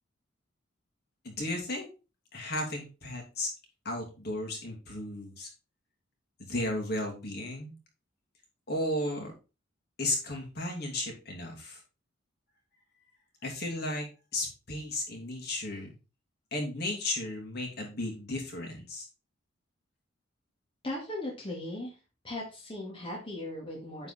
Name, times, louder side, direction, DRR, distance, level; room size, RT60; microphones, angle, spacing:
voice 1, 1.2-1.9 2.3-3.5 3.8-5.5 6.4-7.7 8.7-9.3 10.0-11.8 13.4-14.1 14.3-15.9 16.5-19.0, left 1 dB, 55° left, 0 dB, 2.9 m, -34 dB
voice 2, 20.8-21.9 22.2-24.1, left 1 dB, 30° left, -2 dB, 2.1 m, -38 dB
9.6 x 4.7 x 4.3 m, 0.31 s
head